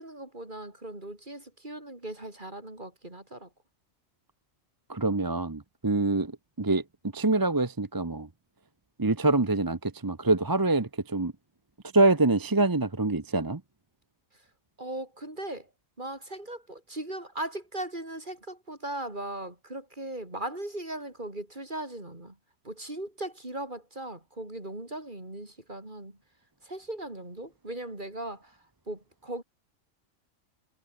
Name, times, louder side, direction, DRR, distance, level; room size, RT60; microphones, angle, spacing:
voice 1, 0.0-3.5 14.8-15.7 16.0-22.4 22.6-26.2 26.6-28.6 28.9-29.4, right 1 dB, 35° right, 5.1 m, -38 dB
voice 2, 4.9-6.8 7.1-8.3 9.0-11.3 11.9-13.6, right 2 dB, 20° right, 0.7 m, -25 dB
omnidirectional pair, 1.4 m